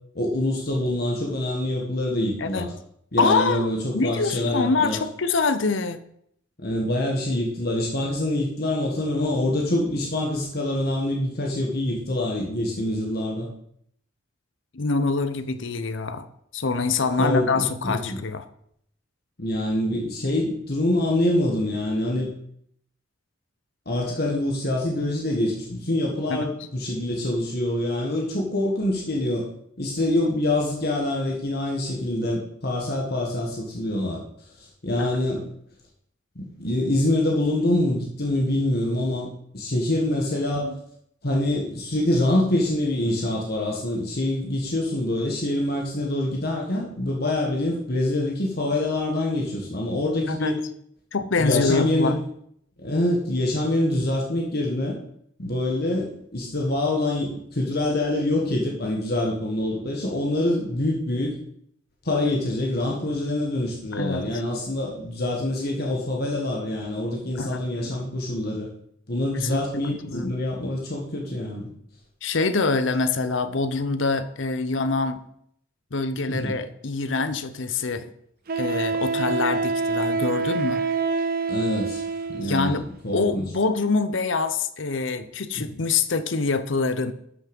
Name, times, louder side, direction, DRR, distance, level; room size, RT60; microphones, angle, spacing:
voice 1, 0.1-2.7 3.1-5.0 6.6-13.5 17.2-18.2 19.4-22.3 23.8-29.4 29.8-34.2 34.6-35.5 36.3-39.3 39.5-40.7 41.2-50.6 51.4-52.2 52.8-55.0 55.4-61.3 62.0-68.7 69.1-71.7 76.3-76.5 81.5-82.0 82.3-83.4 85.6-85.7, left 1 dB, 50° left, -1 dB, 1.6 m, -25 dB
voice 2, 3.2-3.7 3.9-6.0 14.7-16.3 16.5-18.4 26.3-26.4 35.0-35.2 40.6-40.7 50.3-50.5 51.1-52.2 63.9-64.3 67.4-67.9 69.3-70.4 72.2-75.2 75.9-78.1 78.6-80.8 82.4-82.8 83.1-87.1, left 4 dB, 70° left, 11 dB, 0.8 m, -25 dB
Wind instrument woodwind instrument, 77.2-77.3 78.5-82.6, right 4 dB, 45° right, 0.6 m, -26 dB
12.5 x 5.9 x 5.3 m, 0.70 s
head